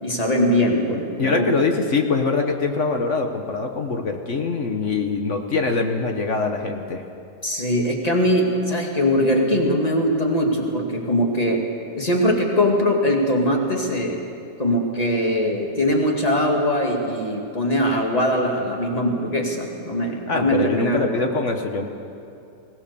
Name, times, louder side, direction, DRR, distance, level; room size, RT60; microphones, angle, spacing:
voice 1, 0.0-1.7 7.4-11.6 11.9-14.2 14.6-21.3, equal, 25° left, 0 dB, 2.5 m, -21 dB
voice 2, 1.2-7.0 20.3-21.9, left 4 dB, 50° left, 4 dB, 1.4 m, -23 dB
21.5 x 17.5 x 6.9 m, 2.7 s
omnidirectional pair, 1.7 m